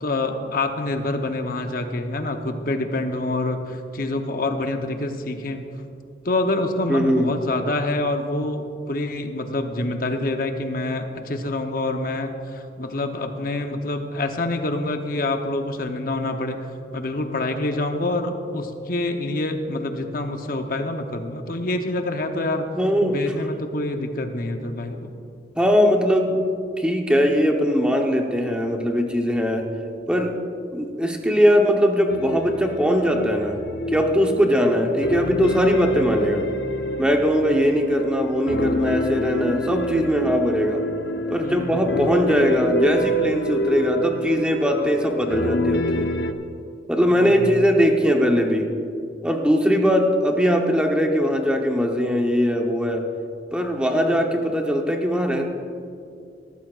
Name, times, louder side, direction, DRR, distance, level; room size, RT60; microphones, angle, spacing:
voice 1, 0.0-5.6 6.2-22.7 23.1-25.1 41.4-42.1 47.1-47.6, left 2 dB, 55° left, 5 dB, 0.9 m, -26 dB
voice 2, 6.9-7.3 22.8-23.2 25.6-26.4 26.8-29.7 30.1-30.3 30.7-33.6 33.9-36.5 37.0-40.8 41.3-46.1 46.9-48.7 49.2-53.1 53.5-55.4, equal, 5° right, 2 dB, 0.9 m, -20 dB
sound 1, 32.1-46.3, left 1 dB, 75° left, 0.7 m, -27 dB
18.0 x 13.5 x 2.5 m, 2.5 s
head